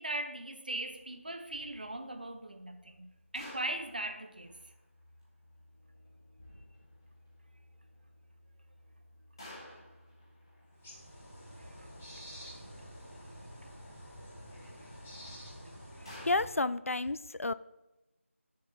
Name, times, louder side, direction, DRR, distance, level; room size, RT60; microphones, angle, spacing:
voice 1, 0.0-4.6 11.6-11.9 12.1-12.6 13.6-13.7 16.0-16.1, right 1 dB, 40° right, 0.8 m, -40 dB
sound 1, 0.7-16.3, left 1 dB, 20° left, 1.3 m, -56 dB
sound 2, 10.7-16.5, equal, 5° left, 0.5 m, -49 dB
voice 2, 16.2-17.5, left 2 dB, 80° left, 0.4 m, -31 dB
8.7 x 6.6 x 3.9 m
figure-of-eight pair, 175°, 7 cm